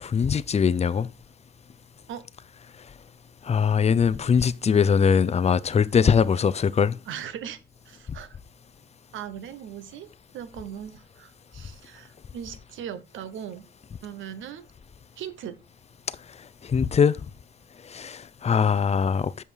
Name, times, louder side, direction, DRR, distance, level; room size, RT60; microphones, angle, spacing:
voice 1, 0.0-1.1 3.4-7.0 16.6-17.2 17.9-19.4, left 6 dB, 35° left, 0.6 m, -21 dB
voice 2, 7.1-7.6 7.9-8.4 9.1-10.1 10.3-13.7 14.0-14.7 15.2-15.6, right 9 dB, 80° right, 1.0 m, -38 dB
7.0 x 5.6 x 4.8 m
cardioid pair, 90°, 20 cm